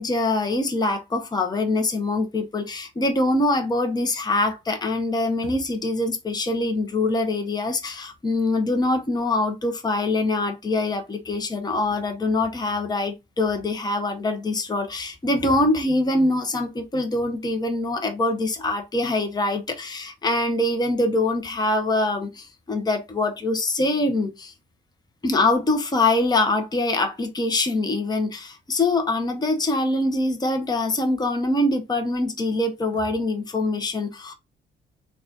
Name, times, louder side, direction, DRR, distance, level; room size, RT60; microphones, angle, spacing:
voice 1, 0.0-24.5 25.2-34.3, left 2 dB, 20° left, 0.8 m, -24 dB
3.9 x 2.4 x 3.8 m
cardioid pair, 90°, 20 cm